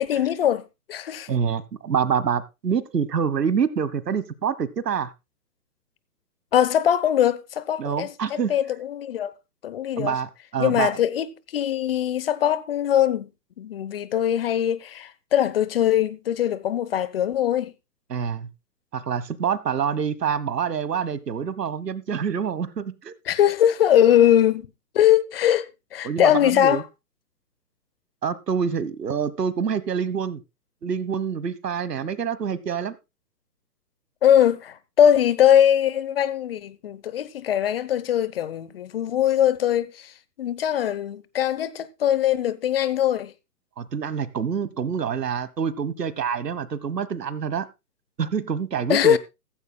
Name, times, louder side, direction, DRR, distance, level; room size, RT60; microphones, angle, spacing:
voice 1, 0.1-0.6 0.9-1.3 6.5-8.1 8.5-9.3 9.6-10.1 10.6-13.2 13.6-17.7 23.3-24.7 24.9-26.8 34.2-40.1 40.4-43.3 48.9-49.2, left 10 dB, 35° left, 0.8 m, -21 dB
voice 2, 1.3-5.1 7.8-8.5 10.0-10.9 18.1-18.5 18.9-23.2 26.0-26.8 28.2-30.4 30.8-33.0 43.8-47.7 48.2-49.2, right 7 dB, 80° right, 1.3 m, -26 dB
15.0 x 14.5 x 2.2 m
hypercardioid pair, 145°, 48 cm